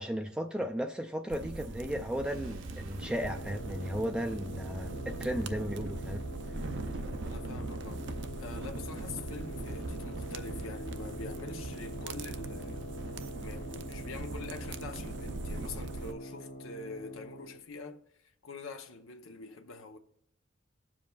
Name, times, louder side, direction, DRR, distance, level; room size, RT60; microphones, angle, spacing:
voice 1, 0.0-6.3 6.6-6.7, equal, 5° right, 0.3 m, -35 dB
sound 1, 1.3-16.1, right 3 dB, 60° right, 0.5 m, -40 dB
sound 2, 2.2-13.3, right 1 dB, 85° right, 1.2 m, -52 dB
sound 3, 3.1-17.6, equal, 45° left, 1.1 m, -45 dB
voice 2, 7.2-12.8 13.4-20.0, left 3 dB, 90° left, 0.9 m, -45 dB
19.0 x 7.4 x 2.4 m
head